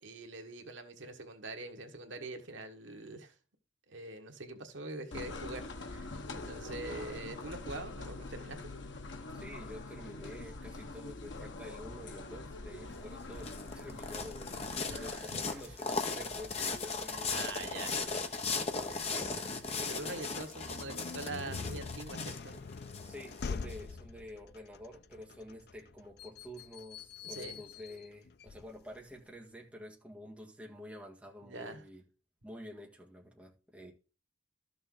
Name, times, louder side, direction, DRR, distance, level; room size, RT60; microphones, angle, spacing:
voice 1, 0.0-3.3 3.9-8.6 14.9-15.6 17.1-18.1 19.4-19.5 19.8-22.6 27.2-27.6 31.4-31.8, right 2 dB, 80° right, 1.5 m, -44 dB
sound 1, 5.1-15.2, left 2 dB, 75° left, 1.1 m, -44 dB
voice 2, 9.3-17.6 18.6-19.3 23.0-32.0 32.4-33.9, left 1 dB, 5° right, 1.8 m, -49 dB
sound 2, 12.9-23.8, left 4 dB, 35° left, 1.1 m, -37 dB
sound 3, 20.5-29.2, left 4 dB, 55° left, 0.4 m, -45 dB
12.5 x 6.7 x 3.9 m
head